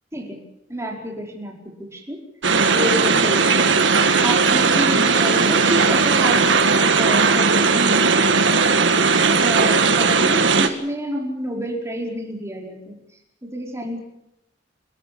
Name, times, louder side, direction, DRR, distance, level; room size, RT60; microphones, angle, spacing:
voice 1, 0.1-0.4 0.7-2.2 2.7-3.7 4.2-8.9 9.4-13.0 13.4-14.0, equal, 15° right, 1 dB, 4.8 m, -29 dB
sound 1, 2.4-10.7, right 4 dB, 85° right, 1.9 m, -17 dB
29.5 x 13.5 x 8.6 m, 0.86 s
head